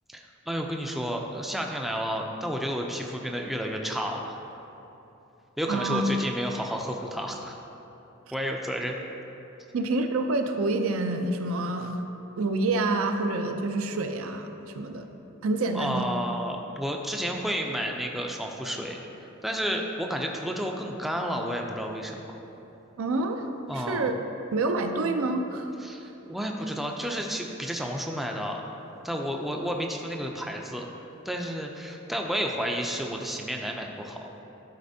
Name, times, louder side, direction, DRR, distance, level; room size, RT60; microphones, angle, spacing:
voice 1, 0.1-4.4 5.6-7.6 8.3-9.0 15.7-19.0 19.4-22.2 23.7-24.1 25.8-28.6 29.0-30.9 31.3-34.3, equal, ahead, 1 dB, 0.4 m, -31 dB
voice 2, 5.7-6.0 9.7-11.9 12.4-14.5 14.8-15.1 15.4-16.0 23.0-23.5 23.7-24.2 24.5-25.7, right 2 dB, 75° right, 5 dB, 0.5 m, -27 dB
11.5 x 4.2 x 2.7 m, 3.0 s
head